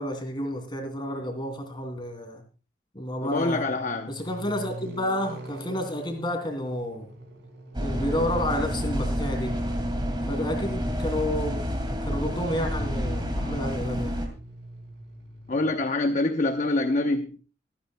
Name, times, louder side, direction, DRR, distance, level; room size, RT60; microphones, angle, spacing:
voice 1, 0.0-2.4 2.9-3.7 4.1-7.1 7.8-9.6 10.3-11.6 12.0-14.1, left 1 dB, 25° left, 5 dB, 2.7 m, -30 dB
voice 2, 3.2-4.1 15.5-17.3, left 2 dB, 40° left, 6 dB, 0.8 m, -25 dB
sound 1, 3.4-15.7, right 1 dB, 70° right, 4.5 m, -45 dB
sound 2, 7.7-14.3, equal, 25° right, 2.3 m, -29 dB
25.0 x 9.6 x 2.2 m, 0.35 s
head